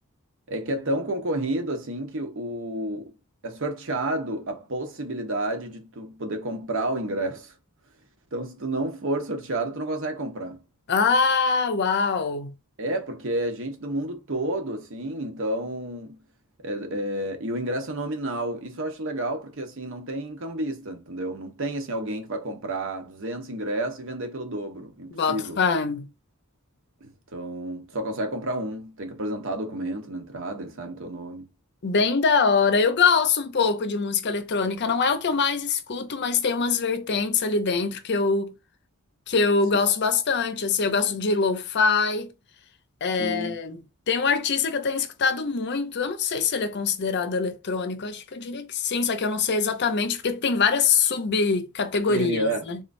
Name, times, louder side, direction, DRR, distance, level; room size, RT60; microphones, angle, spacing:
voice 1, 0.5-3.1 3.4-7.5 8.3-10.6 12.8-16.2 16.6-25.6 27.0-31.5 43.2-43.6 52.1-52.7, right 1 dB, 65° right, 0.9 m, -30 dB
voice 2, 10.9-12.5 25.1-26.1 31.8-38.5 39.3-42.3 43.0-52.8, left 5 dB, 50° left, 0.6 m, -24 dB
3.7 x 3.1 x 2.6 m
head